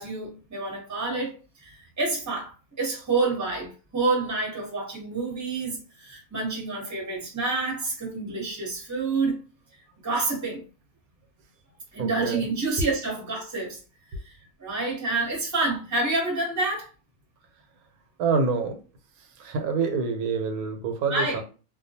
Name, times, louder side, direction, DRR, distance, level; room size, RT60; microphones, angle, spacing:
voice 1, 0.0-9.4 10.0-10.6 11.9-13.8 14.2-16.9 21.1-21.4, right 3 dB, 15° right, 0.7 m, -28 dB
voice 2, 12.0-12.4 18.2-18.8 19.4-21.4, right 5 dB, 90° right, 1.1 m, -26 dB
2.3 x 2.2 x 2.7 m
omnidirectional pair, 1.5 m